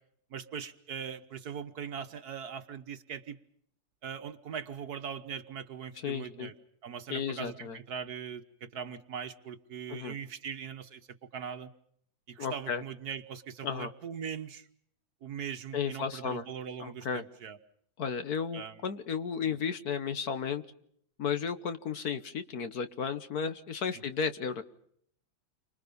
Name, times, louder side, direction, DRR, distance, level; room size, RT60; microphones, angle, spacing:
voice 1, 0.3-3.4 4.0-6.5 6.8-11.0 11.3-11.7 12.3-14.7 15.2-17.6 18.5-18.8 19.4-19.6 23.9-24.0, right 7 dB, 60° right, 9 dB, 1.6 m, -40 dB
voice 2, 6.0-6.5 7.1-7.8 9.9-10.1 12.4-12.8 13.6-13.9 15.7-16.5 16.8-17.2 18.0-20.6 21.2-24.6, left 6 dB, 60° left, 10 dB, 1.6 m, -33 dB
29.5 x 25.0 x 5.3 m, 0.67 s
omnidirectional pair, 2.0 m